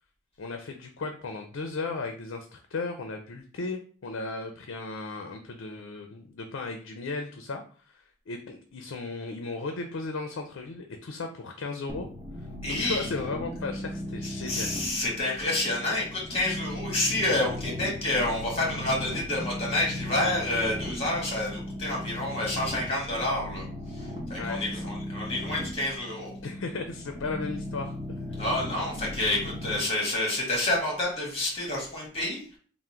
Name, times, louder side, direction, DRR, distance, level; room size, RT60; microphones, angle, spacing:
voice 1, 0.4-12.1 12.4-14.7 24.4-24.8 26.4-28.2, left 3 dB, 85° left, 5 dB, 0.5 m, -36 dB
sound 1, 11.9-29.8, left 1 dB, 20° right, 0.9 m, -37 dB
voice 2, 12.6-13.1 14.4-23.6 23.9-26.3 28.4-32.4, left 2 dB, 30° left, -3 dB, 1.6 m, -29 dB
3.6 x 2.1 x 4.4 m, 0.42 s
head